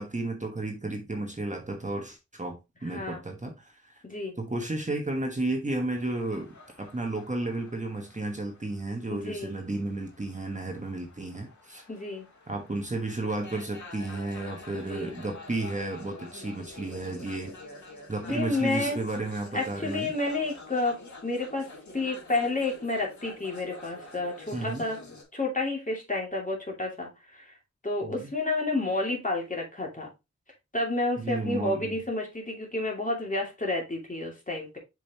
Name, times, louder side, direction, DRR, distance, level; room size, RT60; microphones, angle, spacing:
voice 1, 0.0-3.8 4.4-11.8 12.5-17.5 18.1-20.1 24.5-24.8 28.0-28.3 31.2-31.9, right 2 dB, 25° right, 1.3 m, -33 dB
voice 2, 2.8-3.2 4.0-4.3 9.1-9.5 11.9-12.3 14.7-15.2 18.2-19.0 19.5-25.0 25.3-27.5 27.8-30.1 30.7-34.8, left 2 dB, 25° left, 2.5 m, -30 dB
sound 1, 5.9-25.2, left 3 dB, 80° left, 2.1 m, -48 dB
6.9 x 5.2 x 2.9 m
wide cardioid pair, 95°, 29 cm